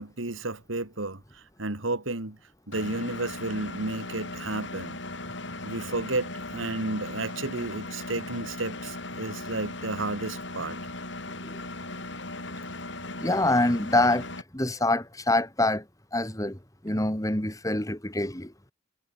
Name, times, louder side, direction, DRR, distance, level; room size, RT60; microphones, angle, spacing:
voice 1, 0.0-2.4 2.7-5.0 5.6-10.8, right 2 dB, 80° right, 2.4 m, -32 dB
Engine, 2.7-14.4, left 2 dB, 65° left, 7.9 m, -38 dB
voice 2, 13.2-14.3 14.5-15.8 16.1-16.6 16.8-18.5, left 2 dB, 15° left, 2.9 m, -25 dB
head